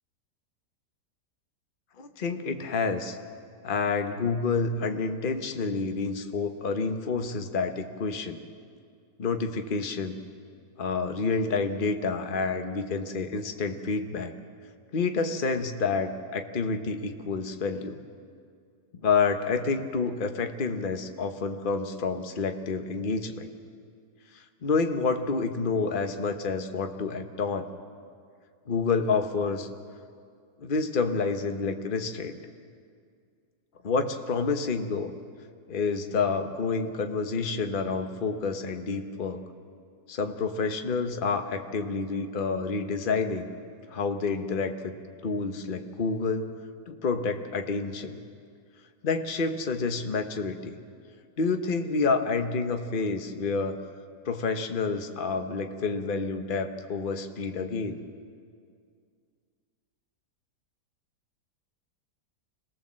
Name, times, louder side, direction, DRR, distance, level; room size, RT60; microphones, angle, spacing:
voice 1, 2.0-3.2 3.6-8.4 9.2-10.2 10.8-14.3 14.9-18.0 18.9-23.5 24.3-27.7 28.7-29.7 30.6-32.4 33.8-35.1 35.7-39.4 40.1-43.5 43.9-44.9 45.2-46.6 46.9-48.2 49.0-50.8 51.4-53.8 54.2-58.0, left 4 dB, 35° left, 6 dB, 1.1 m, -29 dB
26.5 x 18.5 x 7.5 m, 2.2 s
omnidirectional pair, 1.8 m